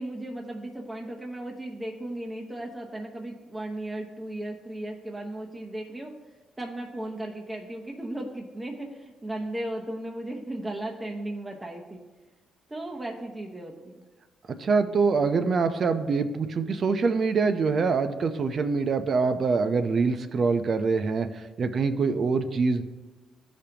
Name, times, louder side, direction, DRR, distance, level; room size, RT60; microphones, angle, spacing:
voice 1, 0.0-6.1 6.6-12.0 12.7-14.0, right 1 dB, 15° right, 0 dB, 0.9 m, -36 dB
voice 2, 14.6-21.3 21.6-22.8, right 4 dB, 50° right, 9 dB, 0.6 m, -24 dB
13.5 x 5.2 x 2.9 m, 1.2 s
cardioid pair, 90°, 0 cm